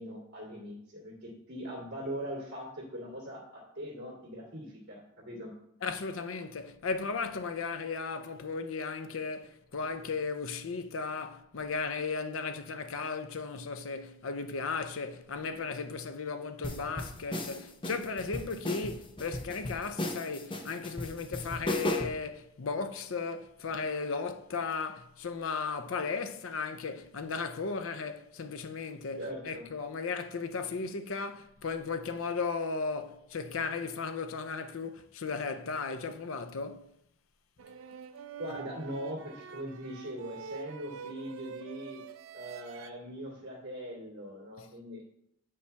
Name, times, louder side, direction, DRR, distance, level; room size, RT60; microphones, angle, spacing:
voice 1, 0.0-5.5 29.2-29.6 38.4-42.0 42.3-45.0, equal, 55° right, 2.3 m, -41 dB
voice 2, 5.8-36.9 44.6-44.7, left 4 dB, 80° left, 0.6 m, -36 dB
sound 1, 16.6-22.2, left 1 dB, 25° left, 0.7 m, -36 dB
sound 2, 37.6-42.9, right 6 dB, 80° right, 0.4 m, -46 dB
8.1 x 5.4 x 3.4 m
head